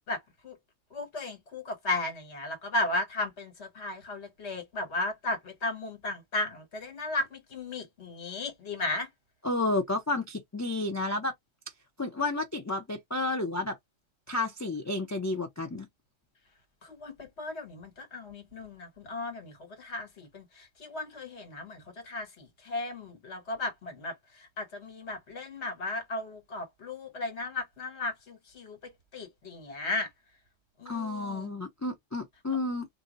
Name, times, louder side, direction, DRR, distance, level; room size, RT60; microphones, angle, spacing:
voice 1, 0.9-9.1 16.8-24.1 24.4-28.8 29.1-30.1 30.8-31.5, left 2 dB, 60° left, 1.5 m, -35 dB
voice 2, 9.4-11.3 12.0-13.8 14.3-15.9 30.9-32.9, left 2 dB, 25° left, 0.3 m, -31 dB
2.7 x 2.1 x 3.8 m
omnidirectional pair, 1.3 m